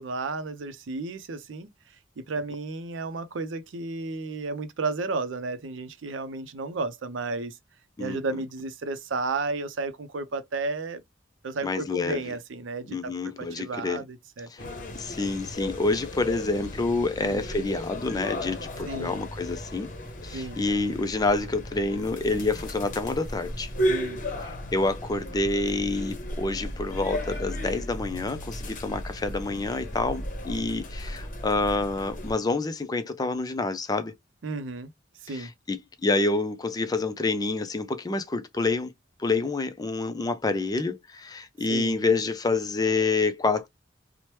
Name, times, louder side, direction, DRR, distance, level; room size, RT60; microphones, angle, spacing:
voice 1, 0.0-1.7 2.2-7.6 8.0-11.0 11.4-13.1 13.4-14.7 17.2-17.4 18.9-19.2 20.3-20.6 23.9-24.2 34.4-34.9 35.2-35.5 41.7-41.9, right 3 dB, 85° right, 0.5 m, -33 dB
voice 2, 11.6-12.2 12.9-14.0 14.5-14.6 14.9-19.9 20.2-23.7 24.5-34.1 35.3-38.9 39.2-43.7, left 3 dB, 20° left, 0.4 m, -28 dB
sound 1, 14.6-32.3, equal, 45° left, 0.8 m, -35 dB
2.9 x 2.1 x 3.1 m
head